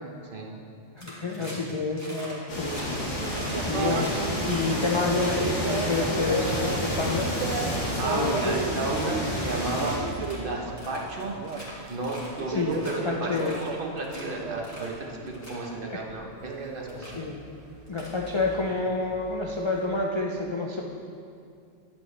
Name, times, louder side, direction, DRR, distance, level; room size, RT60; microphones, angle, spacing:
voice 1, 0.9-2.9 3.7-4.1 4.5-7.3 8.1-8.6 12.5-13.6 15.9-16.0 17.0-17.4 17.9-20.8, left 3 dB, 45° left, -1 dB, 0.3 m, -28 dB
sound 1, 1.0-1.7 2.0-2.3 2.6-2.8 3.2-5.3 5.6-7.2 7.6-8.5 8.8-9.0 9.3-9.7 10.0-10.4 10.8-11.7 12.0-12.4 12.7-12.9 13.4-14.2 14.6-14.9 15.3-15.6 16.4-16.5 16.9-17.1 17.9-18.8, equal, 10° left, 2.2 m, -43 dB
sound 2, 2.5-10.0, left 1 dB, 80° left, 2.0 m, -30 dB
sound 3, 3.2-15.3 15.6-20.1, right 5 dB, 80° right, 1.0 m, -35 dB
voice 2, 3.7-4.0 8.0-10.0 10.4-11.4 11.9-17.2, right 2 dB, 45° right, -1 dB, 1.1 m, -33 dB
11.0 x 8.4 x 3.2 m, 2.5 s
omnidirectional pair, 1.3 m